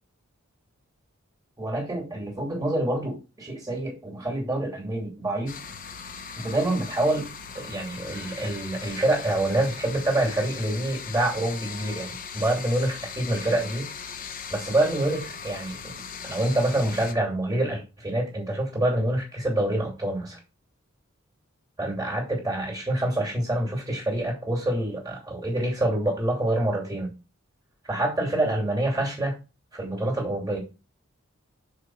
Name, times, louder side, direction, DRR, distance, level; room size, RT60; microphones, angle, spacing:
voice 1, 1.6-5.5 6.4-7.3 7.5-13.9 14.5-15.9 16.2-20.4 21.8-27.1 27.8-29.4 29.7-30.6, right 1 dB, 20° right, -1 dB, 2.9 m, -26 dB
sound 1, 5.5-17.1, left 6 dB, 40° left, 0.9 m, -39 dB
6.6 x 5.0 x 4.7 m, 0.30 s
head